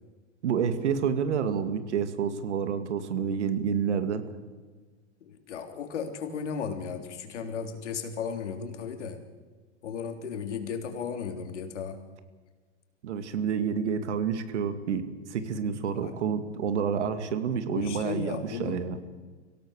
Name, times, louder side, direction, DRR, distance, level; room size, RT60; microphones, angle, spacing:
voice 1, 0.4-4.2 13.0-19.0, right 7 dB, 75° right, 10 dB, 2.4 m, -29 dB
voice 2, 5.2-9.2 9.8-12.0 15.9-16.2 17.7-18.8, left 6 dB, 75° left, 5 dB, 3.5 m, -35 dB
25.5 x 17.0 x 6.6 m, 1.4 s
hypercardioid pair, 115°, 35 cm